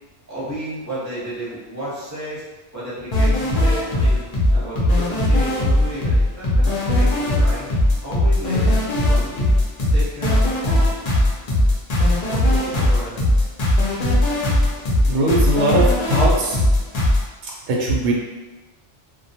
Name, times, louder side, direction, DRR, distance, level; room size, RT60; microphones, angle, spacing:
voice 1, 0.3-2.4 2.7-4.2 4.5-7.7 8.0-9.5 9.9-10.9 12.2-13.2, right 1 dB, 15° right, -9 dB, 0.7 m, -32 dB
sound 1, 3.1-17.2, left 1 dB, 50° left, 0.5 m, -18 dB
voice 2, 15.1-16.6 17.7-18.1, right 1 dB, 85° right, -3 dB, 0.9 m, -20 dB
2.2 x 2.1 x 2.7 m, 1.1 s
omnidirectional pair, 1.2 m